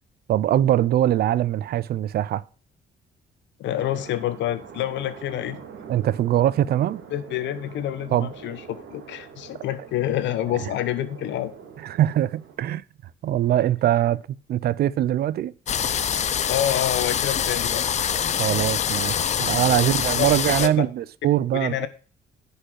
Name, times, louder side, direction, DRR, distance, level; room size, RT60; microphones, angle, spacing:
voice 1, 0.3-2.4 5.9-7.0 8.1-8.3 11.8-12.8 13.2-14.2 14.5-15.5 18.4-21.9, right 12 dB, 60° right, 0.5 m, -22 dB
voice 2, 3.6-5.6 7.1-11.5 16.5-17.8 19.7-19.8 20.2-20.3 20.6-20.8 21.5-21.9, left 12 dB, 80° left, 1.0 m, -27 dB
sound 1, 3.8-12.6, right 7 dB, 85° right, 2.2 m, -43 dB
sound 2, 15.7-20.7, left 8 dB, 40° left, 0.6 m, -24 dB
9.9 x 5.5 x 6.2 m
cardioid pair, 135°, 18 cm